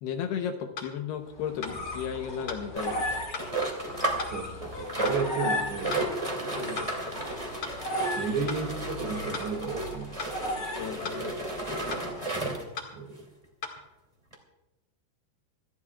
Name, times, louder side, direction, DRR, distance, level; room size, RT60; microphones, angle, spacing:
voice 1, 0.0-3.0 6.6-6.9 10.8-11.4, left 8 dB, 75° left, 5 dB, 2.7 m, -34 dB
sound 1, 0.8-0.9 1.6-1.8 2.5-2.6 3.3-3.5 4.2-4.4 5.0-5.2 5.9-6.1 6.8-6.9 7.6-7.8 8.5-8.6 9.3-9.5 10.2-10.4 11.0-11.2 11.9-12.1 12.8-12.9 13.6-13.8, left 5 dB, 45° left, 2.0 m, -37 dB
sound 2, 1.3-12.4, left 1 dB, 30° left, 2.4 m, -37 dB
sound 3, 2.7-4.3 4.6-12.8 13.4-13.5 13.8-13.9 14.3-14.4, right 2 dB, 15° right, 1.3 m, -33 dB
voice 2, 4.2-6.1 7.0-7.1 8.2-10.1 12.9-13.3, right 5 dB, 70° right, 2 dB, 4.4 m, -33 dB
26.5 x 15.5 x 2.4 m, 0.97 s
omnidirectional pair, 5.3 m